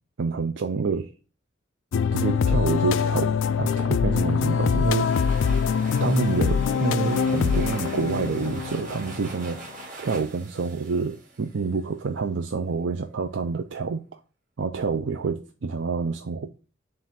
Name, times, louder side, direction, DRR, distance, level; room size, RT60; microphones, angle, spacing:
voice 1, 0.2-1.1 2.1-5.1 6.0-14.2 14.6-16.5, right 4 dB, 70° right, 0.5 m, -28 dB
sound 1, 1.9-9.7, left 6 dB, 75° left, 0.3 m, -24 dB
sound 2, 4.5-12.0, right 3 dB, 40° right, 1.7 m, -43 dB
7.6 x 2.5 x 5.6 m
head